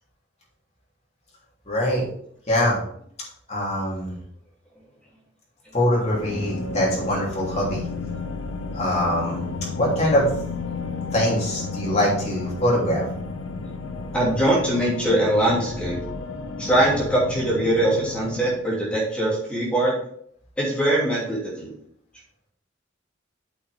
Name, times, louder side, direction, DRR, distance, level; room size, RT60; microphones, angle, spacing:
voice 1, 1.7-2.0 2.5-2.8 3.5-4.1 5.7-7.8 8.7-9.4 9.7-10.2 11.1-13.0, left 1 dB, 35° left, -5 dB, 3.2 m, -23 dB
sound 1, 6.1-18.6, left 4 dB, 80° left, 0.8 m, -32 dB
voice 2, 14.1-16.0 16.6-19.9 20.6-21.8, right 1 dB, 5° left, -5 dB, 2.7 m, -22 dB
8.4 x 6.2 x 3.5 m, 0.65 s
head